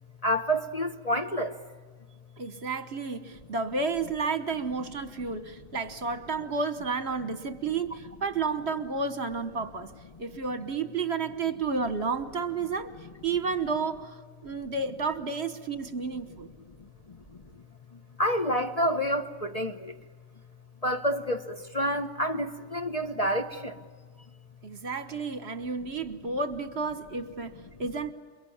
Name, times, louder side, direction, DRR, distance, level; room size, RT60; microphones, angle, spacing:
voice 1, 0.2-1.6 16.8-17.2 17.9-19.9 20.8-23.8, equal, 30° left, 1.0 m, -29 dB
voice 2, 2.4-9.9 10.2-12.9 13.2-16.5 24.6-28.1, right 4 dB, 50° right, 1.5 m, -31 dB
29.0 x 23.0 x 8.8 m
omnidirectional pair, 1.4 m